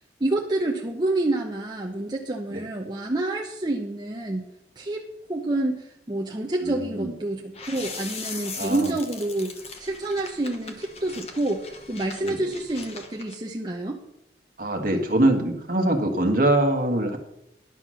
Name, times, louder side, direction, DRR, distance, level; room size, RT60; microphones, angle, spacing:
voice 1, 0.2-4.5 4.8-5.0 5.3-14.0, right 2 dB, 25° right, 1 dB, 0.7 m, -28 dB
voice 2, 6.6-7.1 8.6-8.9 12.2-12.5 14.6-17.2, right 1 dB, 50° right, 5 dB, 1.4 m, -23 dB
sound 1, 7.5-13.4, left 4 dB, 35° left, 1.1 m, -40 dB
11.0 x 6.0 x 6.2 m, 0.84 s
head